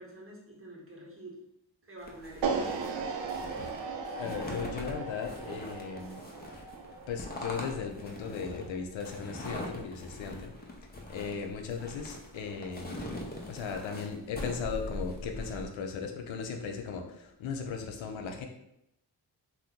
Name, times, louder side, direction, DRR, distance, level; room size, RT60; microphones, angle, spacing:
voice 1, 0.0-1.4 1.8-2.5 11.5-11.8, right 1 dB, 30° right, -3 dB, 1.0 m, -48 dB
sound 1, 2.0-15.6, left 1 dB, 20° left, 0.6 m, -42 dB
sound 2, 2.4-8.6, right 5 dB, 75° right, 0.5 m, -37 dB
voice 2, 4.2-6.2 7.1-10.5 11.1-13.1 13.5-18.5, left 5 dB, 85° left, 4 dB, 0.6 m, -37 dB
2.8 x 2.2 x 3.6 m, 0.81 s
cardioid pair, 60°, 45 cm